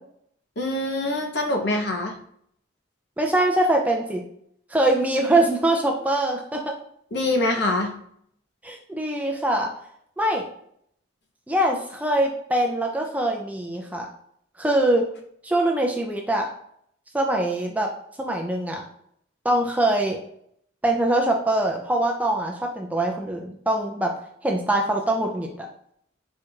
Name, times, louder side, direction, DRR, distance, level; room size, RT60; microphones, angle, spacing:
voice 1, 0.6-2.2 7.1-7.9, left 2 dB, 55° left, 2 dB, 0.8 m, -24 dB
voice 2, 3.2-4.2 4.7-6.7 8.6-9.7 10.2-10.4 11.5-14.1 14.6-15.1 15.4-16.5 17.1-17.9 18.2-18.8 19.4-20.2 20.8-24.1 24.4-25.7, right 1 dB, 10° right, 1 dB, 0.4 m, -23 dB
4.5 x 2.5 x 4.4 m, 0.67 s
head